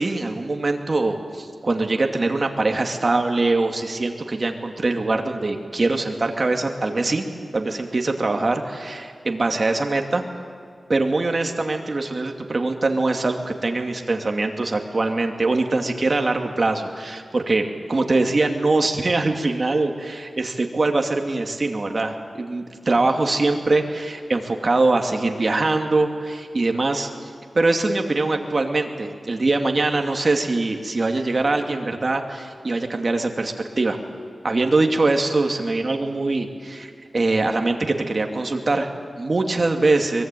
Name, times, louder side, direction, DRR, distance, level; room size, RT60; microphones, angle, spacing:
voice 1, 0.0-7.3 7.5-10.2 10.9-17.6 17.9-27.1 27.5-34.0 34.4-40.2, right 2 dB, 45° right, 4 dB, 2.5 m, -23 dB
23.5 x 22.0 x 9.2 m, 2.2 s
wide cardioid pair, 110°, 0 cm